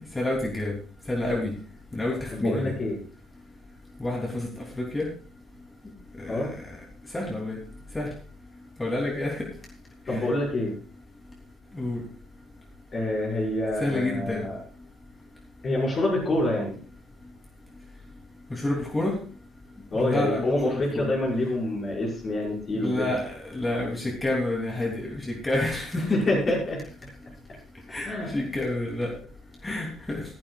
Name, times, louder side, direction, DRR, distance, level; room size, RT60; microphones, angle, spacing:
voice 1, 0.1-0.7 1.1-1.5 1.9-2.7 4.0-4.5 4.9-5.1 6.2-6.5 7.1-7.6 7.9-8.1 8.8-9.5 10.1-10.3 11.7-12.0 13.8-14.4 18.5-19.2 19.9-21.1 22.7-26.1 27.9-28.1 28.3-29.1 29.6-30.2, left 1 dB, 15° left, -1 dB, 3.1 m, -28 dB
voice 2, 2.3-3.0 6.3-6.5 10.1-10.7 12.9-14.6 15.6-16.8 19.9-23.1 25.9-26.8 28.0-28.4, left 1 dB, 35° left, -3 dB, 5.9 m, -27 dB
15.5 x 13.5 x 2.4 m, 0.39 s
figure-of-eight pair, 50°, 0 cm